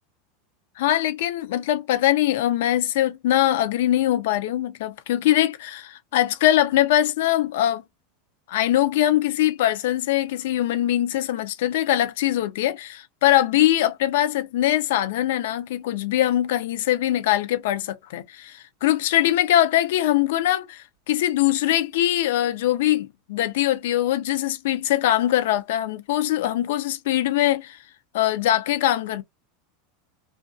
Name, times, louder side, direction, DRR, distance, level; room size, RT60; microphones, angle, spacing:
voice 1, 0.8-7.8 8.5-27.8 28.1-29.2, left 13 dB, 75° left, 0.5 m, -22 dB
2.5 x 2.5 x 2.3 m
supercardioid pair, 135°, 0 cm